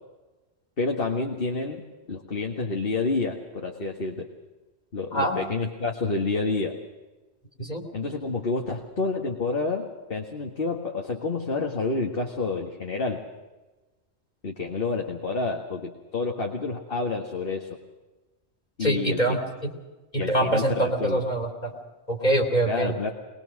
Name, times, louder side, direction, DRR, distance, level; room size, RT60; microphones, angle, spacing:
voice 1, 0.8-1.8 2.1-4.3 4.9-6.8 7.9-13.2 14.4-17.8 18.8-19.4 20.2-21.2 22.7-23.1, left 3 dB, 55° left, 1 dB, 1.9 m, -29 dB
voice 2, 18.8-19.4 20.1-21.7 22.1-22.9, right 1 dB, 40° left, 2 dB, 3.0 m, -24 dB
22.0 x 21.5 x 6.4 m, 1.2 s
omnidirectional pair, 1.1 m